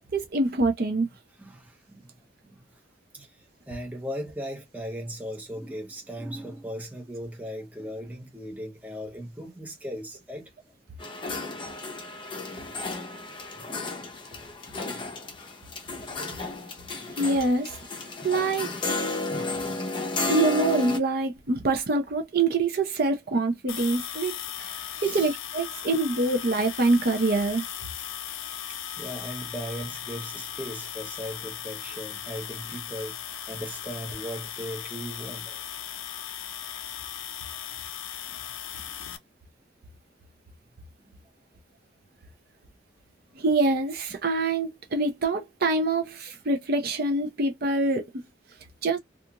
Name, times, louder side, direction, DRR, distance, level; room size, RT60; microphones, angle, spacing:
voice 1, 0.1-1.1 17.1-17.7 18.2-18.7 20.3-27.6 43.4-48.0 48.8-49.0, right 2 dB, 50° right, 0.5 m, -25 dB
voice 2, 1.4-2.0 3.7-10.5 24.9-25.3 29.0-33.1 33.5-35.6, equal, 10° right, 0.7 m, -37 dB
sound 1, 11.0-21.0, left 3 dB, 25° left, 0.6 m, -33 dB
sound 2, 23.7-39.2, left 10 dB, 85° left, 0.5 m, -37 dB
2.4 x 2.4 x 2.8 m
head